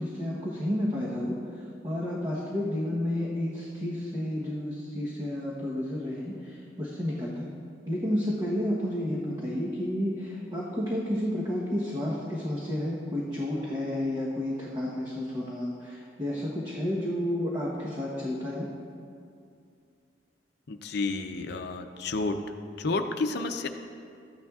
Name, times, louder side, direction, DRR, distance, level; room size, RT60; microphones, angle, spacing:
voice 1, 0.0-7.5 7.9-18.7, left 1 dB, 25° right, -6 dB, 1.0 m, -31 dB
voice 2, 20.7-22.4 22.8-23.7, left 3 dB, 65° left, 7 dB, 0.6 m, -30 dB
14.0 x 9.8 x 2.4 m, 2.4 s
head